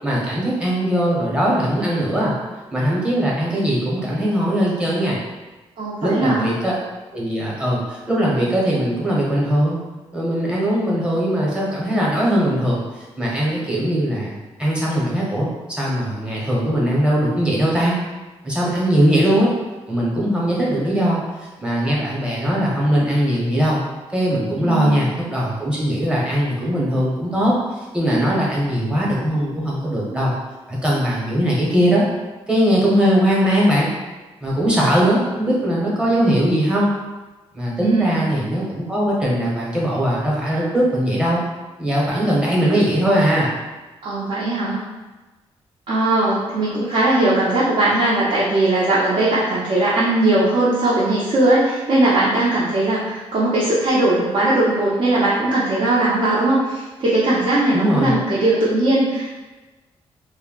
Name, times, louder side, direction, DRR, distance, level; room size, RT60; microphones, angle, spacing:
voice 1, 0.0-2.3 2.7-5.2 6.0-6.7 7.1-9.8 10.1-12.8 13.2-15.5 15.8-18.0 18.4-19.5 19.9-23.8 24.1-27.5 27.9-30.3 30.7-32.0 32.5-33.9 34.4-36.9 37.5-41.4 41.8-43.5 57.7-58.2, equal, 10° right, -5 dB, 0.8 m, -20 dB
voice 2, 5.8-6.5 24.6-25.1 37.8-38.3 44.0-44.8 45.9-59.3, right 2 dB, 60° right, -8 dB, 0.7 m, -19 dB
2.2 x 2.1 x 3.7 m, 1.2 s
cardioid pair, 105°, 11 cm